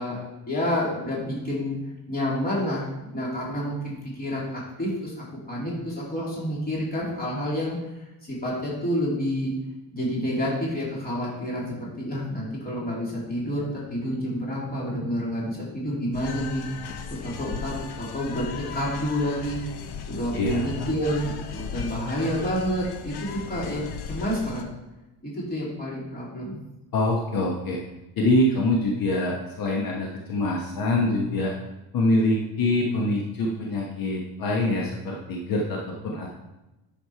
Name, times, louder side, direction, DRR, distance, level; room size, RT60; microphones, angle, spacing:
voice 1, 0.0-1.7 2.1-7.8 8.3-9.5 9.9-19.6 20.1-24.6 25.2-26.6, equal, 20° left, -5 dB, 3.0 m, -29 dB
sound 1, 16.1-24.6, left 6 dB, 75° left, 1.1 m, -37 dB
voice 2, 20.3-20.9 26.9-27.8 28.2-31.5 31.9-36.3, left 1 dB, 55° left, -1 dB, 1.3 m, -25 dB
10.0 x 6.4 x 4.6 m, 1.0 s
cardioid pair, 170°, 40 cm